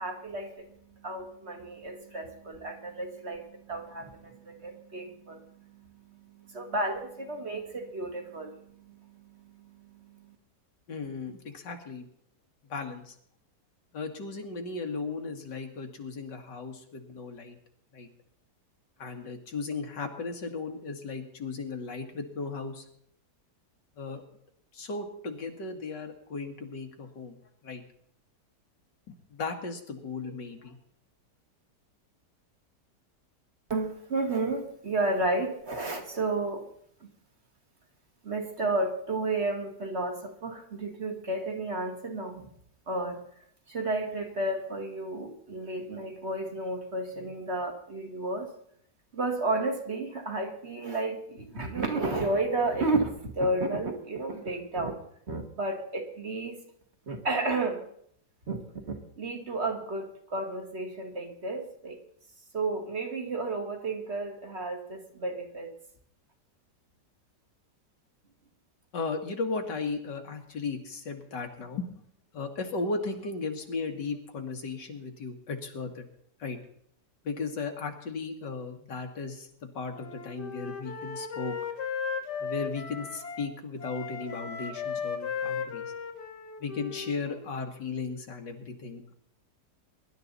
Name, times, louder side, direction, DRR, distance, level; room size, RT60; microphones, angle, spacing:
voice 1, 0.0-10.4 33.7-36.7 37.0-37.1 38.2-42.5 42.9-43.2 43.7-48.5 49.1-55.0 55.3-56.6 57.1-57.8 58.5-58.6 58.9-62.0 62.5-65.7, right 2 dB, 40° right, 4 dB, 2.1 m, -32 dB
voice 2, 10.9-12.1 12.7-13.2 13.9-17.6 17.9-18.1 19.0-22.9 24.0-24.2 24.7-27.8 29.1-30.8 68.9-71.9 72.3-76.1 76.4-76.6 77.2-81.6 82.4-85.9 86.6-89.1, left 4 dB, 90° left, 4 dB, 2.5 m, -36 dB
Wind instrument woodwind instrument, 79.9-83.5 83.8-87.6, left 6 dB, 70° left, 1.9 m, -36 dB
22.5 x 12.0 x 4.1 m, 0.68 s
omnidirectional pair, 1.8 m